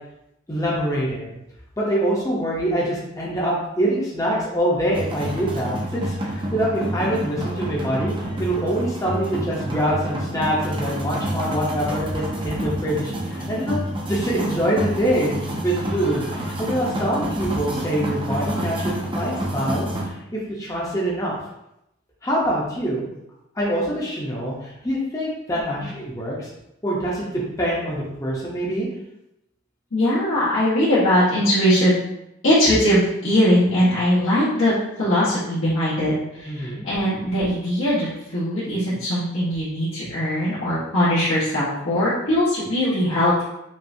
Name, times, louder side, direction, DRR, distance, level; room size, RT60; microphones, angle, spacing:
voice 1, 0.5-1.4 1.8-8.1 8.4-13.8 14.1-15.4 15.6-21.4 22.2-23.1 23.5-26.5 26.8-27.3 27.6-28.9 36.5-36.9, right 1 dB, 15° left, -5 dB, 0.7 m, -25 dB
sound 1, 4.9-20.1, right 1 dB, 25° right, 0.6 m, -28 dB
voice 2, 25.5-25.9 29.9-32.0 32.4-43.4, equal, 85° left, -11 dB, 1.3 m, -20 dB
5.4 x 2.6 x 2.7 m, 0.84 s
head